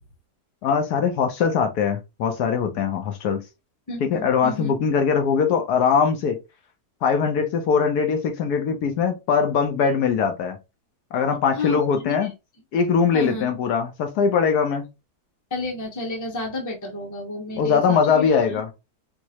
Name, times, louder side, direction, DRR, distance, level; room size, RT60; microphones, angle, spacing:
voice 1, 0.6-3.4 4.0-6.4 7.0-10.6 11.1-12.3 12.7-14.9 17.6-18.7, left 6 dB, 70° left, 1.2 m, -21 dB
voice 2, 3.9-4.7 11.5-12.3 13.1-13.5 15.5-18.6, left 2 dB, 15° left, 0.7 m, -31 dB
4.6 x 2.0 x 2.8 m
omnidirectional pair, 1.8 m